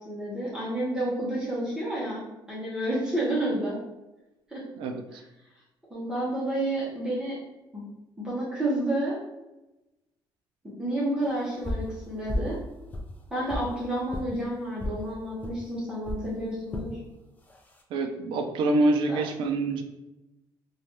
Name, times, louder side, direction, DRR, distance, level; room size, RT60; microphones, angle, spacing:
voice 1, 0.0-3.8 4.5-4.7 5.9-7.4 7.7-7.8 8.2-9.2 10.8-12.6 13.3-17.0 19.1-19.2, right 1 dB, 10° right, -8 dB, 0.7 m, -30 dB
voice 2, 4.8-5.2 17.9-19.8, right 2 dB, 85° right, 5 dB, 0.4 m, -26 dB
sound 1, 11.6-11.9 12.3-12.6 12.9-13.7 14.1-14.3 14.8-15.0 15.4-15.6 16.0-16.2 16.7-16.9 17.5-17.8, left 1 dB, 20° left, 0.4 m, -32 dB
3.1 x 2.3 x 2.6 m, 0.99 s
cardioid pair, 155°, 8 cm